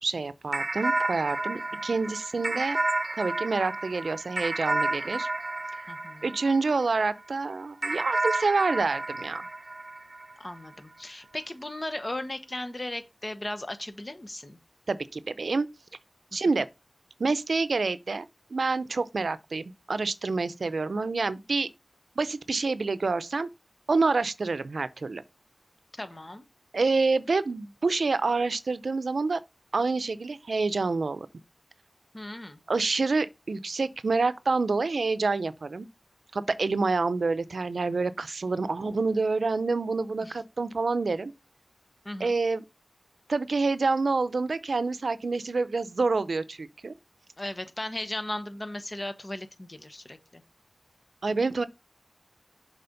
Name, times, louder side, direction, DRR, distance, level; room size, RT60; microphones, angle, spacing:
voice 1, 0.0-2.8 3.2-5.3 5.8-5.9 6.2-9.4 14.9-15.7 16.3-16.7 17.2-18.3 18.5-21.7 22.2-23.5 23.9-25.2 26.7-29.4 29.7-31.3 32.7-35.9 36.3-41.3 42.2-42.6 43.3-46.9 51.2-51.6, right 3 dB, 90° right, 0.6 m, -27 dB
sound 1, 0.5-7.1 7.8-10.6, right 2 dB, 45° right, 0.7 m, -31 dB
voice 2, 5.9-6.4 10.4-14.6 26.0-26.5 32.1-32.6 40.2-40.4 42.0-42.4 47.4-50.4, left 1 dB, 35° left, 1.2 m, -37 dB
6.9 x 4.2 x 5.2 m
wide cardioid pair, 65°, 0 cm